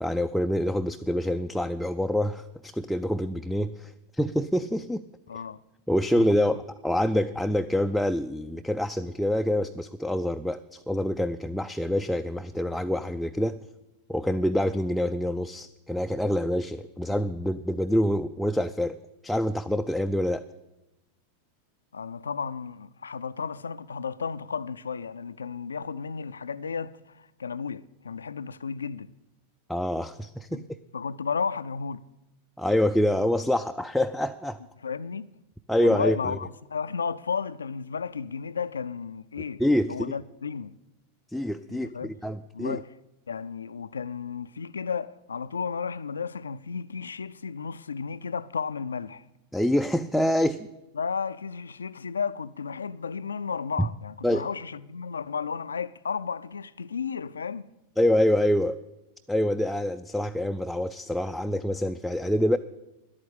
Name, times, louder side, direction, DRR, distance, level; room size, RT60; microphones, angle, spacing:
voice 1, 0.0-5.0 5.9-13.6 14.1-19.0 19.2-20.4 29.7-30.6 32.6-34.6 35.7-36.4 39.6-40.1 41.3-42.8 49.5-50.7 53.8-53.9 54.2-54.5 58.0-58.8 59.3-62.6, left 1 dB, ahead, 0.3 m, -26 dB
voice 2, 5.3-5.6 6.2-6.3 21.9-29.1 30.5-30.7 30.9-32.0 34.8-35.3 35.8-39.6 39.9-40.7 41.7-42.1 42.5-42.9 43.3-49.2 51.0-57.7, left 6 dB, 70° left, 0.4 m, -33 dB
11.0 x 8.7 x 8.2 m
figure-of-eight pair, 90°, 0 cm